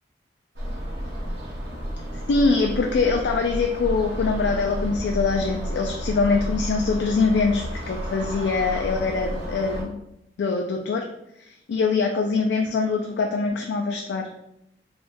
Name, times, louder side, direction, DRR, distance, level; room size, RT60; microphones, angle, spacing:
sound 1, 0.5-9.8, equal, 80° right, 0.8 m, -31 dB
voice 1, 2.3-10.0 10.4-11.0 11.5-14.2, left 4 dB, 80° left, 2 dB, 0.3 m, -23 dB
3.4 x 2.3 x 2.5 m, 0.80 s
head